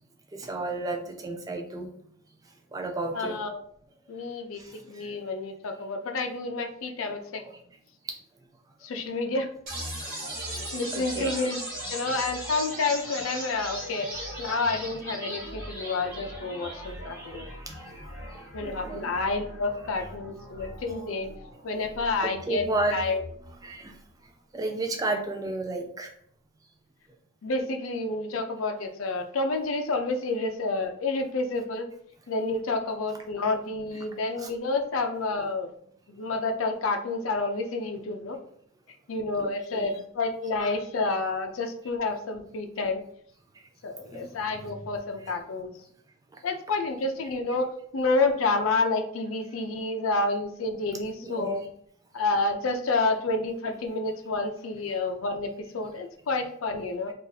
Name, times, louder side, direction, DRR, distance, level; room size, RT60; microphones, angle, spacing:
voice 1, 0.3-1.9 2.7-3.4 4.6-5.2 7.0-7.6 8.1-8.2 10.0-10.2 10.6-11.3 14.0-14.1 16.5-16.7 17.0-17.8 18.6-19.1 20.6-20.7 22.2-23.0 23.6-24.0 24.5-26.1 34.3-34.5 39.4-40.0 44.1-44.3 44.6-44.7 45.2-45.3 51.2-51.7, right 2 dB, 15° right, 3 dB, 0.4 m, -33 dB
voice 2, 3.1-3.6 4.1-4.6 4.9-7.4 8.8-9.5 10.7-11.6 11.9-14.1 14.4-17.5 18.5-21.3 21.6-22.6 22.9-23.2 27.4-31.9 32.3-35.7 36.1-38.4 39.1-43.0 43.8-45.7 46.4-51.6 52.1-57.1, left 3 dB, 85° left, 5 dB, 0.5 m, -29 dB
sound 1, 9.7-23.6, right 1 dB, 40° right, 1.4 m, -39 dB
2.7 x 2.4 x 3.9 m, 0.64 s
head